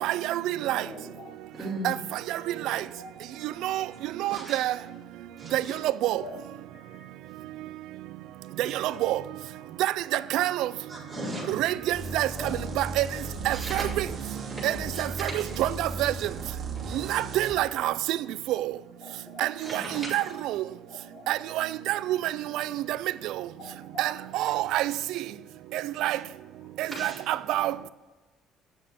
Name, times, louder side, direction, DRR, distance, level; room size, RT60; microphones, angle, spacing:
voice 1, 0.0-0.8 1.8-1.9 2.7-2.8 3.6-3.8 4.2-4.7 5.5-5.6 6.0-6.2 8.6-9.2 9.8-9.9 10.3-10.7 11.5-12.3 12.8-13.1 13.5-14.0 14.6-15.3 15.6-16.1 17.1-18.2 19.4-19.8 20.1-20.2 20.5-20.6 21.3-22.2 22.5-22.6 24.0-24.9 26.0-26.2 27.0-27.7, right 14 dB, 75° right, 0.4 m, -26 dB
voice 2, 0.6-1.3 2.4-3.7 6.1-6.4 6.7-7.1 8.9-9.1 9.6-9.7 16.8-16.9 19.0-19.5 20.6-21.3 23.6-24.1, left 2 dB, 45° left, 2.8 m, -46 dB
voice 3, 1.6-2.0 4.3-4.6 5.4-5.8 7.3-7.4 10.9-11.6 12.4-12.5 13.5-13.8 14.5-15.5 16.9-17.0 19.6-20.2 26.9-27.2, right 1 dB, ahead, 4.3 m, -37 dB
sound 1, 11.9-17.6, right 3 dB, 35° right, 2.2 m, -36 dB
8.7 x 7.6 x 8.0 m
cardioid pair, 155°, 0 cm